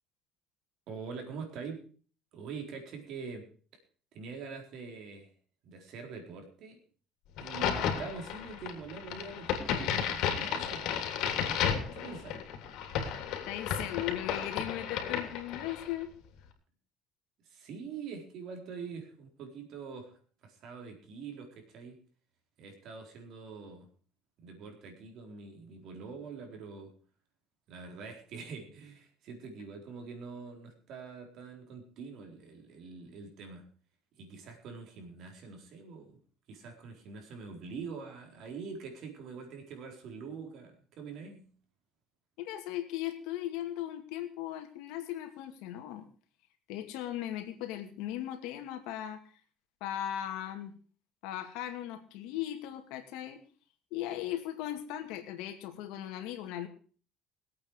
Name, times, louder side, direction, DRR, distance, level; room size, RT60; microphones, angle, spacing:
voice 1, 0.9-1.9 2.3-3.4 4.1-5.3 5.6-6.8 7.4-11.0 11.9-12.4 17.5-20.2 20.4-22.0 22.6-23.9 24.4-26.9 27.7-33.6 34.2-36.2 36.5-41.5, right 5 dB, 60° right, 3 dB, 4.1 m, -44 dB
Crack, 7.4-15.9, left 8 dB, 70° left, 3.1 m, -33 dB
voice 2, 13.5-16.1 42.4-46.0 46.7-49.2 49.8-50.7 51.2-53.4 53.9-56.7, left 12 dB, 85° left, 7 dB, 2.3 m, -38 dB
21.0 x 8.6 x 4.8 m, 0.41 s
cardioid pair, 135°, 0 cm